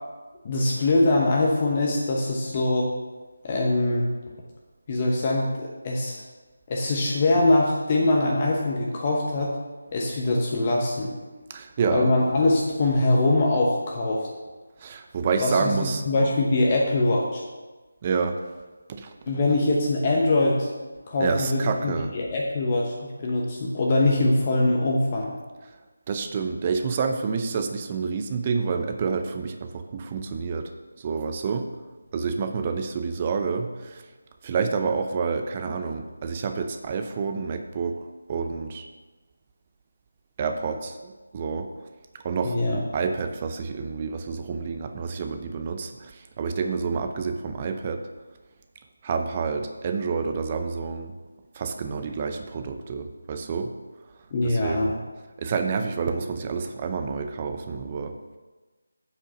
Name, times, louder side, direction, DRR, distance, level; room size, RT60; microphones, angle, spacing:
voice 1, 0.4-2.9 3.4-4.1 4.9-6.2 6.7-9.6 9.9-11.1 11.9-14.3 15.4-17.4 19.3-20.7 21.1-25.3 42.4-42.8 54.3-54.9, left 2 dB, 30° left, -2 dB, 1.0 m, -23 dB
voice 2, 11.5-12.1 14.8-16.0 18.0-18.4 18.9-19.2 21.2-22.1 26.1-30.7 31.0-31.7 32.1-34.0 34.4-38.0 38.3-38.9 40.4-41.7 42.1-48.1 49.0-51.2 51.5-53.7 54.4-54.9 55.4-58.4, right 5 dB, 25° right, 7 dB, 0.6 m, -28 dB
7.6 x 6.3 x 5.7 m, 1.3 s
figure-of-eight pair, 165°, 0 cm